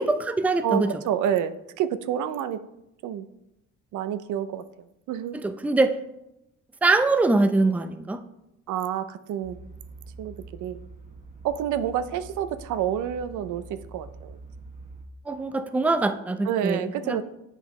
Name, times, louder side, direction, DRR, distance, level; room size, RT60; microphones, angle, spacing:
voice 1, 0.0-0.9 5.4-6.0 6.8-8.2 15.3-17.2, right 2 dB, 5° right, 8 dB, 0.4 m, -23 dB
voice 2, 0.6-2.6 3.0-3.3 3.9-4.6 5.1-5.4 8.7-9.6 10.2-10.3 10.6-10.8 11.4-14.4 16.4-17.2, right 10 dB, 80° right, 12 dB, 0.5 m, -28 dB
sound 1, 9.4-15.1, right 3 dB, 25° right, 1.0 m, -45 dB
7.9 x 5.3 x 3.1 m, 0.86 s
cardioid pair, 90°, 30 cm